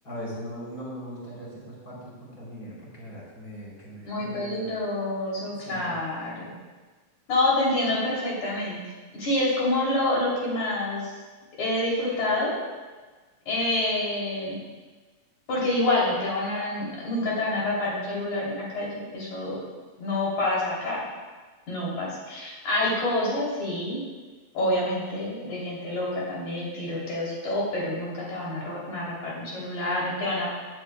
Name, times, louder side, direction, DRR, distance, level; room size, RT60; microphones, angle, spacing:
voice 1, 0.0-4.8 5.6-5.9, equal, 25° left, -5 dB, 4.1 m, -40 dB
voice 2, 4.0-6.5 7.3-8.8 9.1-11.1 11.6-12.5 13.5-14.6 15.5-19.6 20.0-21.1 21.7-24.0 24.5-30.6, left 1 dB, 55° left, -6 dB, 4.8 m, -27 dB
18.0 x 9.9 x 2.4 m, 1.3 s
omnidirectional pair, 4.1 m